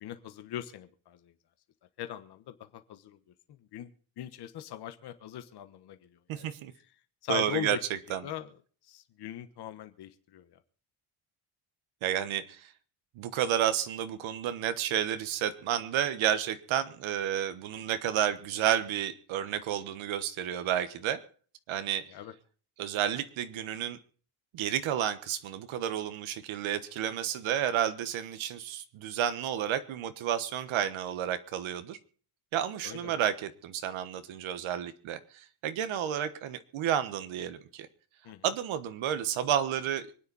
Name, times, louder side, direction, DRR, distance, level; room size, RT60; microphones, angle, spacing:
voice 1, 0.0-1.3 2.0-3.2 3.6-3.9 4.2-6.5 7.2-7.8 8.2-8.5 8.8-10.6 22.1-22.3 32.8-33.2 38.2-38.4, left 12 dB, 50° left, 9 dB, 1.3 m, -40 dB
voice 2, 6.3-6.7 7.3-7.8 8.1-8.2 12.0-12.7 13.2-21.2 21.7-22.1 22.8-24.0 24.5-32.0 32.5-37.9 38.4-40.1, right 10 dB, 70° right, 11 dB, 1.3 m, -31 dB
25.0 x 9.8 x 4.2 m, 0.43 s
cardioid pair, 170°, 49 cm